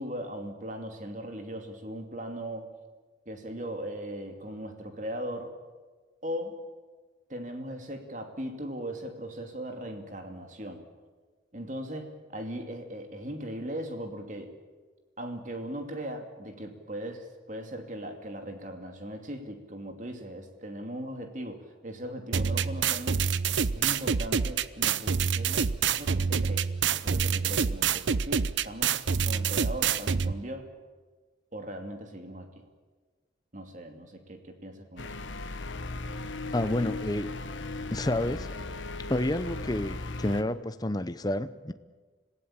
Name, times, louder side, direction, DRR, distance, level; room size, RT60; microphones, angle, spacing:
voice 1, 0.0-2.7 3.3-5.6 6.2-6.6 7.3-10.9 11.5-14.5 15.2-23.2 23.7-26.7 27.0-30.7 31.5-32.6 33.5-35.1, equal, 40° right, 5 dB, 2.6 m, -39 dB
sound 1, 22.3-30.3, right 6 dB, 75° right, 0.7 m, -27 dB
sound 2, 35.0-40.4, left 2 dB, 80° left, 1.2 m, -37 dB
voice 2, 36.5-37.3 37.9-38.5 39.1-41.7, left 1 dB, 20° left, 12 dB, 0.7 m, -29 dB
26.0 x 16.5 x 8.9 m, 1.4 s
head